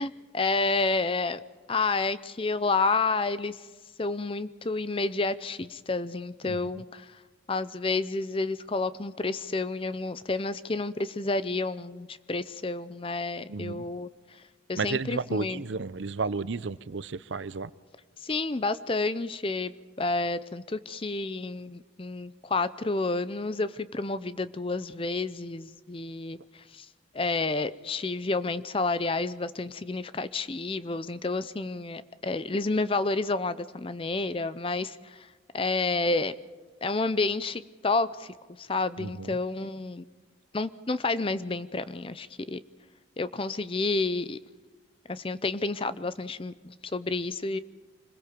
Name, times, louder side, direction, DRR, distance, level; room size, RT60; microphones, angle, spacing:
voice 1, 0.0-1.4 1.7-3.7 4.0-7.1 7.5-14.1 14.7-15.6 18.2-26.9 27.1-35.3 35.5-36.3 36.8-40.0 40.5-42.6 43.2-44.4 45.1-47.6, left 3 dB, 25° left, 14 dB, 0.5 m, -30 dB
voice 2, 13.5-13.9 14.8-17.7 39.0-39.4, right 4 dB, 70° right, 17 dB, 0.6 m, -32 dB
26.0 x 21.0 x 5.2 m, 1.4 s
head